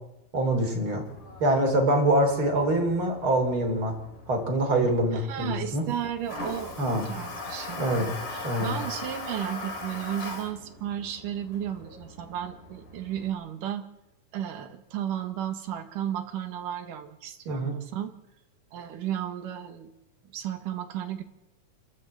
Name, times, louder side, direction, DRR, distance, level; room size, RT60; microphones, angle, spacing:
voice 1, 0.3-1.0 1.4-3.9 4.3-5.8 6.8-7.1 7.8-8.1 8.4-8.8 17.5-17.7, right 1 dB, 40° right, 4 dB, 4.4 m, -24 dB
Toilet flush, 1.1-13.3, left 2 dB, 65° left, 5.3 m, -41 dB
voice 2, 5.1-13.9 14.3-18.1 18.7-19.9 20.3-21.2, right 10 dB, 75° right, 6 dB, 3.2 m, -34 dB
29.0 x 13.0 x 7.9 m, 0.95 s
omnidirectional pair, 3.8 m